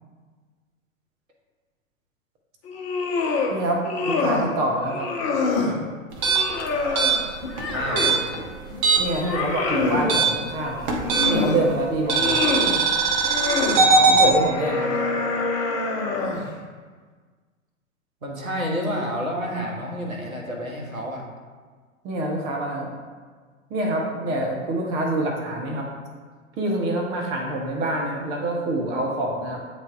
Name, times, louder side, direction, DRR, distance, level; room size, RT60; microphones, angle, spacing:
sound 1, 2.6-3.5 3.8-4.5 4.9-5.8 6.2-8.3 8.7-10.1 10.8-11.6 12.0-12.7 13.2-13.8 14.3-16.5, left 3 dB, 30° left, 0.9 m, -26 dB
voice 1, 3.5-5.1 9.0-12.5 14.1-15.1 22.0-22.9 23.7-25.9 26.6-29.6, right 2 dB, 10° right, 0 dB, 0.3 m, -26 dB
sound 2, 6.1-9.2 9.5-11.6 12.1-14.3, right 4 dB, 35° right, 1.1 m, -20 dB
voice 2, 7.7-8.2 13.9-14.2 18.2-21.2, equal, 85° right, -1 dB, 1.4 m, -29 dB
8.6 x 3.3 x 3.6 m, 1.5 s
figure-of-eight pair, 105°, 41 cm